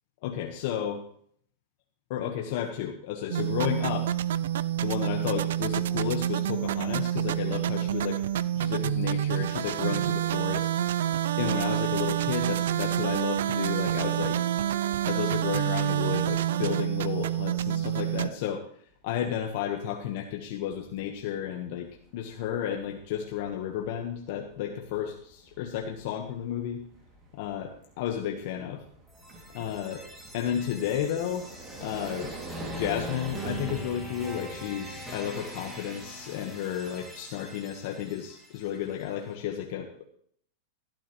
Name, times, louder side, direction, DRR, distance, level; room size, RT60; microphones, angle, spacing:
voice 1, 0.2-1.0 2.1-4.1 4.8-8.2 8.5-10.7 11.4-14.4 15.0-18.6 19.0-26.8 27.3-27.7 28.0-28.8 29.5-30.0 30.3-31.5 31.8-32.3 32.7-40.0, left 9 dB, 55° left, 3 dB, 1.3 m, -32 dB
sound 1, 3.3-18.3, right 11 dB, 80° right, 0.4 m, -28 dB
sound 2, 20.3-20.4 20.7-37.4, right 2 dB, 25° right, 2.4 m, -46 dB
sound 3, 29.1-39.0, equal, 10° right, 2.0 m, -43 dB
14.0 x 12.0 x 3.1 m, 0.62 s
supercardioid pair, 145°, 0 cm